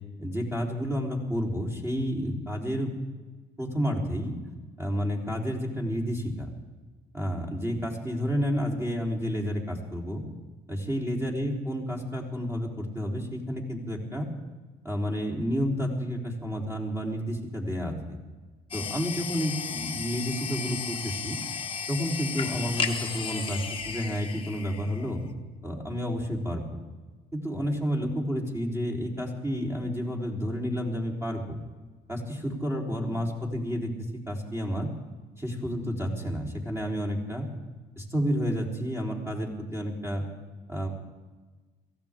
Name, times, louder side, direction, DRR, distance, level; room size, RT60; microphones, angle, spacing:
voice 1, 0.2-2.9 3.6-4.3 4.8-6.5 7.1-10.2 10.7-14.3 14.8-18.2 18.7-21.4 21.9-25.2 25.6-26.6 27.3-31.6 32.1-33.9 34.3-34.9 35.4-37.5 38.0-40.2 40.7-40.9, equal, 15° right, -1 dB, 3.9 m, -30 dB
sound 1, 18.7-25.3, left 6 dB, 30° left, 1.4 m, -34 dB
23.0 x 16.0 x 3.7 m, 1.3 s
cardioid pair, 110°, 17 cm